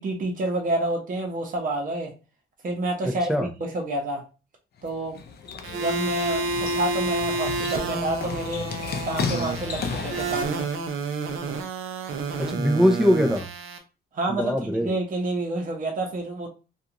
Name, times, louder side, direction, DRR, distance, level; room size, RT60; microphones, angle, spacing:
voice 1, 0.0-2.1 2.6-4.2 4.8-5.2 5.8-8.7 9.1-10.7 14.1-16.5, right 2 dB, 40° right, 1 dB, 0.9 m, -28 dB
voice 2, 3.0-3.5 12.4-13.5 14.3-14.9, equal, ahead, 4 dB, 0.4 m, -22 dB
sound 1, 4.8-10.4, left 5 dB, 50° left, 0.5 m, -34 dB
sound 2, 5.6-13.8, right 3 dB, 75° right, 0.5 m, -29 dB
2.4 x 2.3 x 2.9 m, 0.31 s
cardioid pair, 110°, 21 cm